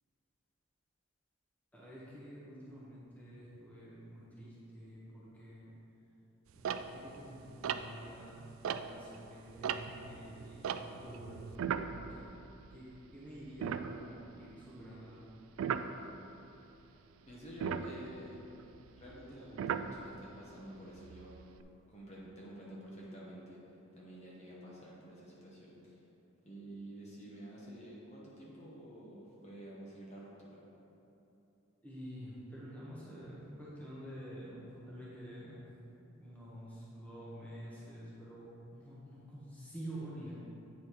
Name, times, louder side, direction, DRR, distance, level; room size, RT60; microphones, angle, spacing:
voice 1, 1.7-5.8 6.5-12.3 12.7-15.2 31.8-35.6 36.1-40.3, equal, 5° left, -8 dB, 1.0 m, -49 dB
sound 1, 6.6-9.2 9.5-13.0 13.3-13.4 13.6-14.5 15.6-15.9 17.5-20.4 21.0-21.6, right 7 dB, 75° right, 0.3 m, -38 dB
voice 2, 17.3-18.4 19.0-21.4 21.9-23.6 23.9-26.0 26.4-30.6, right 1 dB, 30° left, -5 dB, 1.0 m, -50 dB
8.3 x 4.2 x 4.6 m, 3.0 s
head